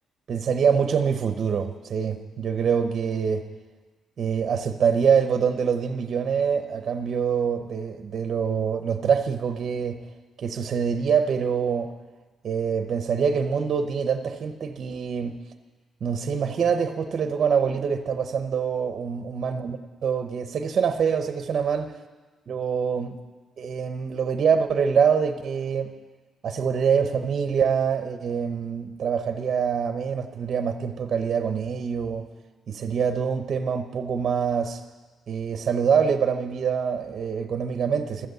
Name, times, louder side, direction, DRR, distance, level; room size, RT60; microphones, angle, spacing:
voice 1, 0.3-3.5 4.2-10.0 10.4-11.9 12.4-15.4 16.0-21.9 22.5-23.2 23.6-25.9 26.4-32.3 32.7-34.8 35.3-38.3, right 6 dB, 50° right, 8 dB, 0.8 m, -25 dB
13.0 x 8.0 x 7.9 m, 1.3 s
cardioid pair, 135°, 0 cm